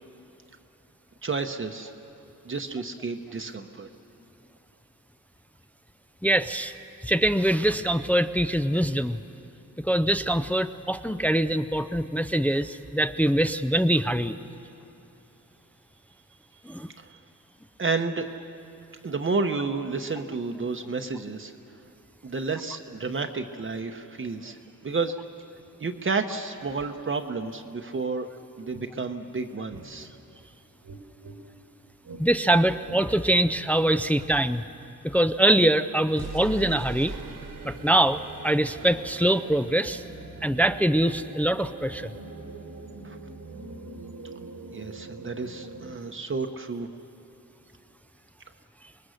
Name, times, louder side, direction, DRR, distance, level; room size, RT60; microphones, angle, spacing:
voice 1, 1.2-1.9 2.4-3.9 17.0-17.2 17.8-18.3 19.0-21.5 22.2-24.6 24.8-25.1 25.8-28.3 28.6-30.1 43.0-43.2 44.7-46.9, right 4 dB, 40° right, 5 dB, 0.9 m, -31 dB
voice 2, 6.2-6.7 7.0-9.2 9.8-14.4 16.7-16.9 32.2-34.6 35.0-37.1 37.6-40.0 40.4-42.1, right 1 dB, 5° left, 10 dB, 0.4 m, -23 dB
sound 1, 28.7-28.9 29.7-29.9 30.8-31.4 32.0-32.2 32.8-33.0 33.3-33.5 34.1-34.3 36.1-46.0, right 4 dB, 85° right, 2.2 m, -41 dB
26.0 x 20.0 x 6.4 m, 2.9 s
wide cardioid pair, 100°, 33 cm